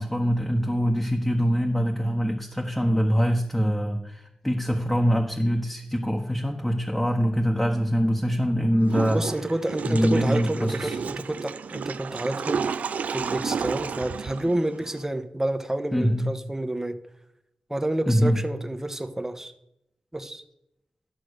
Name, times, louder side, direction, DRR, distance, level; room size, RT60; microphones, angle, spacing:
voice 1, 0.0-9.2 9.8-11.0 15.9-16.2 18.1-18.4, equal, 5° left, 1 dB, 1.4 m, -24 dB
Water / Toilet flush, 8.8-15.0, right 6 dB, 85° right, 0.4 m, -31 dB
voice 2, 9.1-12.7 13.1-17.0 17.7-19.5 20.1-20.4, right 1 dB, 15° right, 8 dB, 1.2 m, -29 dB
12.0 x 5.9 x 6.6 m, 0.81 s
cardioid pair, 60°, 2 cm